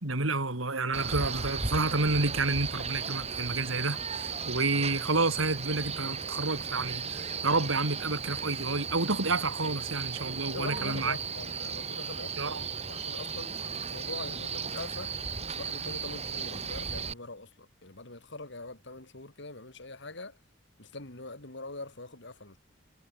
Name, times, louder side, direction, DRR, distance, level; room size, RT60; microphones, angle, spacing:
voice 1, 0.0-11.2 12.4-12.6, right 3 dB, 90° right, 3.2 m, -30 dB
Male speech man speaking, 0.9-17.1, right 5 dB, 35° right, 5.3 m, -35 dB
voice 2, 10.5-15.1 15.6-20.4 20.8-22.6, left 2 dB, 60° left, 3.6 m, -43 dB
head